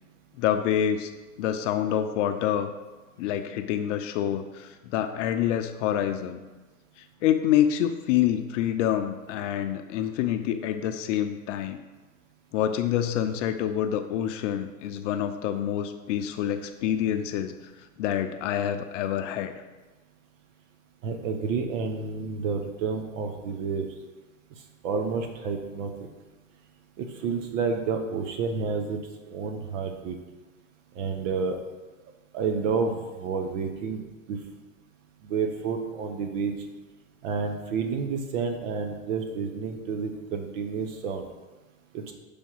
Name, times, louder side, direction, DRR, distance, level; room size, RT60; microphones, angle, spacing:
voice 1, 0.4-1.1 1.4-2.7 3.2-6.4 7.0-11.8 12.5-17.5 18.0-19.5, left 10 dB, 60° left, 8 dB, 0.6 m, -27 dB
voice 2, 21.0-23.9 24.8-25.9 27.0-29.0 29.3-30.2 30.9-31.6 32.3-34.0 34.3-34.4 35.2-36.5 37.2-41.3 41.9-42.1, right 5 dB, 65° right, 5 dB, 0.9 m, -30 dB
7.1 x 3.4 x 5.5 m, 1.2 s
hypercardioid pair, 120°, 41 cm